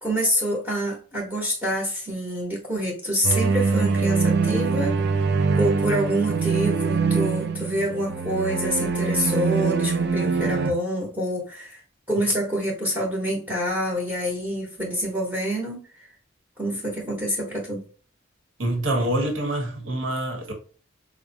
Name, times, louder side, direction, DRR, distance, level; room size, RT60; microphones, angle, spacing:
voice 1, 0.0-5.0 5.5-11.8 12.1-16.1 16.6-17.8, equal, 10° right, 0.9 m, -27 dB
sound 1, 3.2-10.7, right 4 dB, 55° right, 0.4 m, -23 dB
voice 2, 18.6-20.5, right 1 dB, 80° right, 1.0 m, -26 dB
4.7 x 2.1 x 2.6 m
head